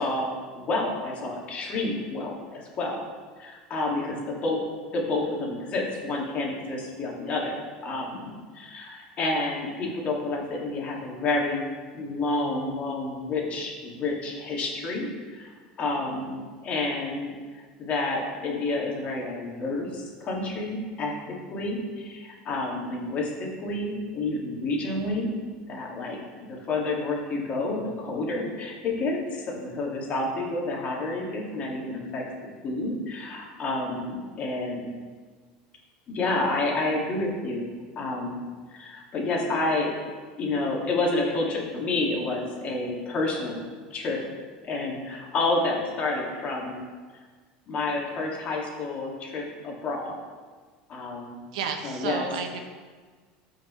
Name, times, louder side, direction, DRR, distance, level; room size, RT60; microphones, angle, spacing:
voice 1, 0.0-3.0 3.4-4.6 4.9-11.7 11.9-25.3 25.7-26.2 26.5-32.2 32.6-35.0 36.1-37.7 38.0-38.4 38.7-39.9 40.4-43.6 43.9-44.2 44.6-46.8 47.7-50.2 50.9-51.4 51.8-52.3, left 2 dB, 40° left, -2 dB, 2.2 m, -29 dB
voice 2, 51.5-52.6, right 5 dB, 85° right, 5 dB, 0.9 m, -31 dB
13.5 x 5.2 x 3.2 m, 1.5 s
supercardioid pair, 115°, 3 cm